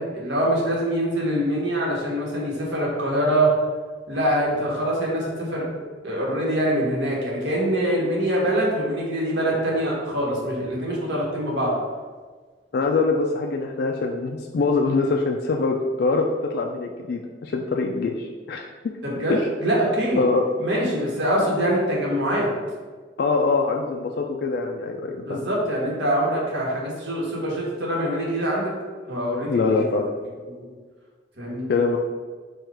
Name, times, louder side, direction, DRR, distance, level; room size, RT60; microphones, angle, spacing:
voice 1, 0.0-3.5 4.1-5.7 6.0-11.8 19.0-20.2 20.6-22.5 25.0-28.7 29.1-29.9 30.5-30.7 31.4-31.7, right 1 dB, 80° right, -4 dB, 1.3 m, -24 dB
voice 2, 12.7-16.3 16.5-18.7 19.3-19.4 20.2-20.4 23.2-25.4 29.5-30.1 31.7-32.0, left 4 dB, 60° left, 1 dB, 0.3 m, -23 dB
4.5 x 2.4 x 4.7 m, 1.5 s
head